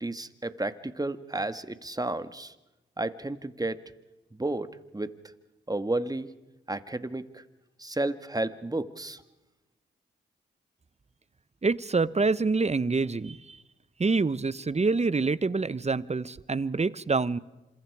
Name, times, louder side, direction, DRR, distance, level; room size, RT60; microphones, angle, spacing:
voice 1, 0.0-2.5 3.0-3.8 4.3-5.1 5.7-6.3 6.7-7.4 7.8-9.2, right 2 dB, 20° right, 11 dB, 1.8 m, -32 dB
voice 2, 11.6-13.6 14.0-17.4, right 4 dB, 35° right, 18 dB, 1.0 m, -26 dB
29.0 x 27.0 x 4.9 m, 1.0 s
supercardioid pair, 45°, 20 cm